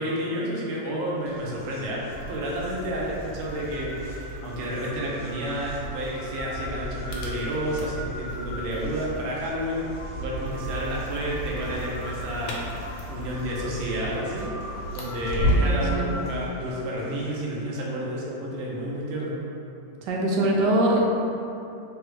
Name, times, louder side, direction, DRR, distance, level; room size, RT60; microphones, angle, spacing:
voice 1, 0.0-14.5 14.9-19.4, equal, 70° right, -4 dB, 0.6 m, -30 dB
sound 1, 1.3-17.6, left 1 dB, 25° left, 0.9 m, -42 dB
sound 2, 2.1-15.8, equal, 80° left, 1.1 m, -33 dB
voice 2, 15.3-16.1 20.0-21.0, right 1 dB, 90° right, -2 dB, 1.2 m, -24 dB
3.2 x 2.3 x 3.1 m, 2.8 s
omnidirectional pair, 1.8 m